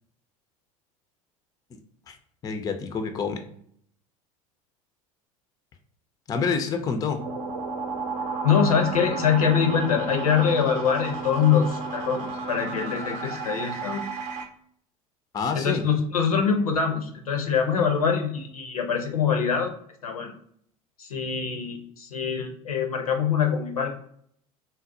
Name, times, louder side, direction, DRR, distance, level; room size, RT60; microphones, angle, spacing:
voice 1, 2.4-3.4 6.3-7.2 15.3-15.8, left 5 dB, 20° left, 6 dB, 0.4 m, -27 dB
sound 1, 7.2-14.4, right 3 dB, 55° right, 0.6 m, -32 dB
voice 2, 8.4-14.0 15.5-19.7 20.0-20.3 21.0-23.9, left 7 dB, 75° left, 4 dB, 0.6 m, -24 dB
4.0 x 2.0 x 2.6 m, 0.64 s
figure-of-eight pair, 75°, 19 cm